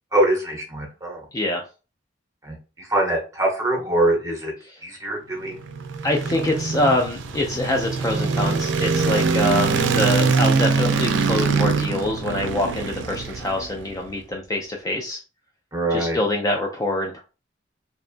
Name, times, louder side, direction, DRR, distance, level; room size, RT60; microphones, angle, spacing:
voice 1, 0.1-1.2 2.4-4.5 4.8-5.6 15.7-16.2, right 1 dB, 20° right, 0 dB, 0.9 m, -23 dB
voice 2, 1.3-1.6 6.0-15.2 15.9-17.2, left 1 dB, 20° left, 1 dB, 0.3 m, -25 dB
sound 1, 5.5-13.9, right 4 dB, 75° right, 0.4 m, -23 dB
2.7 x 2.2 x 2.5 m, 0.33 s
head